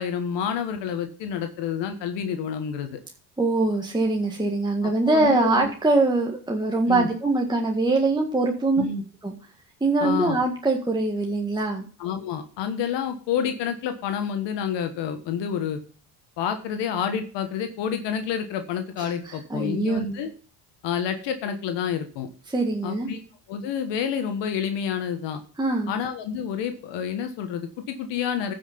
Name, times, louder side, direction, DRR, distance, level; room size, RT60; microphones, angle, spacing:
voice 1, 0.0-3.0 4.8-5.7 6.9-7.1 8.8-9.0 10.0-10.4 12.0-15.8 16.4-20.3 20.8-22.3 22.8-23.2 23.5-25.4 25.9-28.5, left 8 dB, 70° left, 7 dB, 1.4 m, -29 dB
voice 2, 3.4-8.8 9.2-9.3 9.8-11.9 19.3-20.0 22.5-23.1 25.6-25.9, right 2 dB, 10° right, 0 dB, 1.8 m, -23 dB
15.0 x 5.9 x 5.2 m, 0.41 s
supercardioid pair, 70°, 45 cm